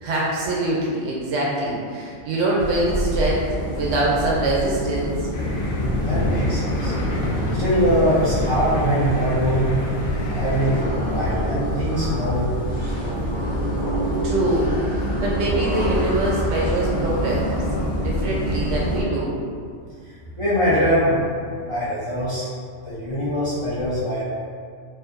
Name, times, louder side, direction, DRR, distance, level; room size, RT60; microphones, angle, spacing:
voice 1, 0.0-5.1 14.2-17.4 17.9-19.3, right 1 dB, 90° right, -4 dB, 1.0 m, -24 dB
sound 1, 2.6-19.0, equal, 60° left, 0.9 m, -26 dB
sound 2, 5.3-10.8, left 2 dB, 90° left, 0.9 m, -27 dB
voice 2, 6.0-6.9 7.5-9.7 10.3-12.5 12.8-13.3 20.4-21.2 21.6-22.5 22.9-24.2, equal, 45° left, -11 dB, 0.4 m, -23 dB
2.6 x 2.5 x 2.4 m, 2.2 s
omnidirectional pair, 1.2 m